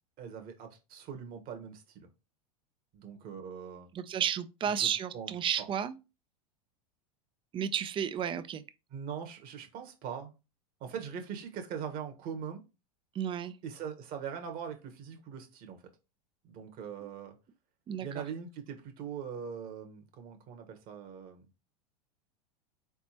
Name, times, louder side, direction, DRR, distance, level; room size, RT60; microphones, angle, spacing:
voice 1, 0.2-2.1 2.9-3.9 4.7-5.3 5.6-5.7 8.9-10.3 10.8-12.6 13.6-15.8 16.4-17.3 18.0-21.4, right 7 dB, 45° right, 1.3 m, -41 dB
voice 2, 3.9-5.9 7.5-8.6 13.1-13.5 17.9-18.1, right 9 dB, 25° right, 0.5 m, -32 dB
3.9 x 3.6 x 2.9 m
hypercardioid pair, 100°, 20 cm